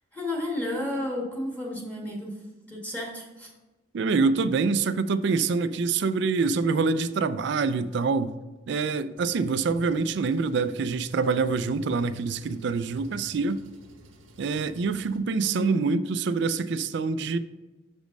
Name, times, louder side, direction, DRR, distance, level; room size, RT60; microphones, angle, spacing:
voice 1, 0.1-2.4 2.7-3.5 15.4-15.8, left 1 dB, 10° left, 1.5 m, -32 dB
voice 2, 3.9-8.3 8.7-13.6 14.4-17.4, right 4 dB, 60° right, 0.4 m, -25 dB
Engine, 9.2-15.2, right 2 dB, 80° right, 1.0 m, -51 dB
6.3 x 5.1 x 5.2 m
head